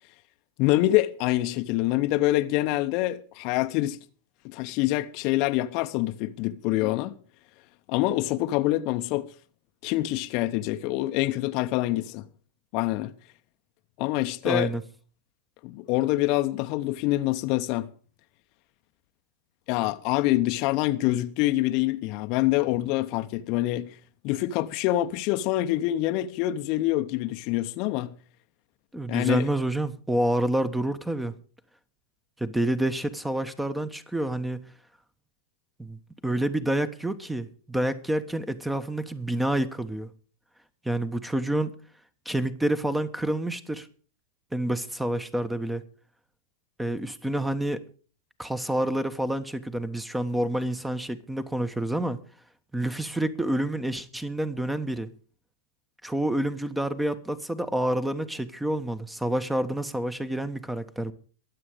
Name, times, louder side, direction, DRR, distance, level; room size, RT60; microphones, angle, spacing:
voice 1, 0.6-4.0 4.4-7.2 7.9-9.3 9.8-12.3 12.7-13.1 14.0-14.7 15.6-17.9 19.7-23.9 24.2-28.1 29.1-29.5, left 16 dB, 50° left, 0.8 m, -25 dB
voice 2, 14.4-14.8 28.9-31.3 32.4-34.6 35.8-40.1 40.8-41.7 42.2-43.9 44.5-45.8 46.8-47.8 48.4-52.2 52.7-55.1 56.0-61.1, right 1 dB, 5° right, 1.1 m, -28 dB
23.0 x 7.7 x 5.0 m
figure-of-eight pair, 95°, 0 cm